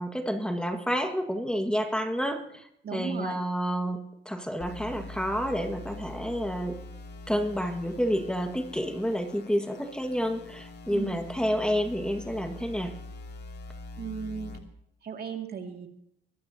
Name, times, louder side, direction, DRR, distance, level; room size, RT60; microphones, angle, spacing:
voice 1, 0.0-2.6 2.9-6.8 7.3-12.9, equal, 5° left, 5 dB, 1.7 m, -29 dB
voice 2, 2.8-3.4 10.9-11.2 14.0-14.6 15.0-15.9, right 6 dB, 50° right, 4 dB, 2.4 m, -36 dB
sound 1, 4.6-14.6, left 2 dB, 55° left, 2.8 m, -44 dB
22.5 x 14.5 x 2.8 m, 0.75 s
cardioid pair, 90°, 20 cm